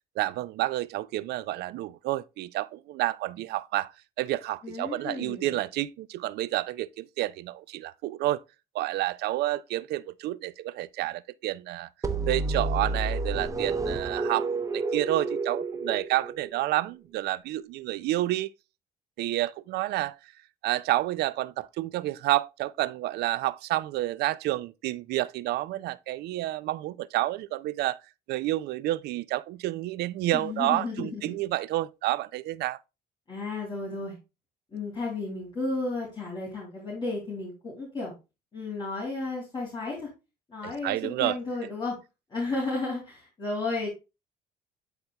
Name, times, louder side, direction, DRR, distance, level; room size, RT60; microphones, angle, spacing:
voice 1, 0.2-3.9 4.2-8.4 8.7-11.9 12.3-18.5 19.2-20.2 20.6-28.0 28.3-32.8 40.6-41.4, right 16 dB, 75° right, 0.5 m, -29 dB
voice 2, 4.6-5.5 30.3-31.4 33.3-34.2 34.7-38.1 38.5-40.1 40.5-42.0 42.3-43.9, left 3 dB, 25° left, 3.1 m, -33 dB
sound 1, 12.0-16.8, right 3 dB, 20° right, 0.8 m, -30 dB
11.5 x 4.4 x 2.2 m
cardioid pair, 110°, 17 cm